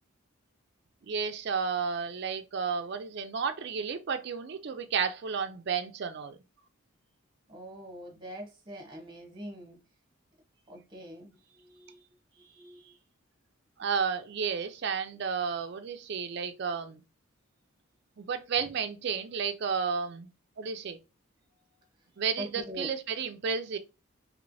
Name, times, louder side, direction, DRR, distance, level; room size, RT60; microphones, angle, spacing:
voice 1, 1.1-6.4 13.8-17.0 18.2-20.3 20.6-21.0 22.2-23.8, right 6 dB, 50° right, 0.4 m, -32 dB
voice 2, 7.5-9.8 10.7-12.0 12.4-13.0 22.4-22.9, equal, 20° right, 0.9 m, -44 dB
3.1 x 3.0 x 2.6 m
head